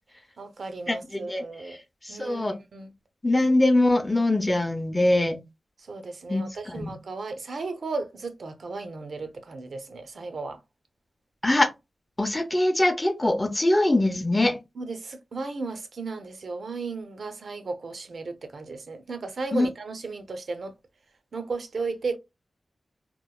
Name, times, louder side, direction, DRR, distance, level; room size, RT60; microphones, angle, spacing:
voice 1, 0.4-1.8 2.1-2.9 5.8-10.6 14.8-20.7 21.3-22.2, right 3 dB, 70° right, 0.5 m, -35 dB
voice 2, 0.9-1.4 2.0-2.6 3.2-5.4 6.3-6.4 6.8-6.9 11.4-11.7 12.2-14.6 19.5-19.7, left 1 dB, 15° left, 0.5 m, -22 dB
2.9 x 2.0 x 2.2 m
wide cardioid pair, 105°, 0 cm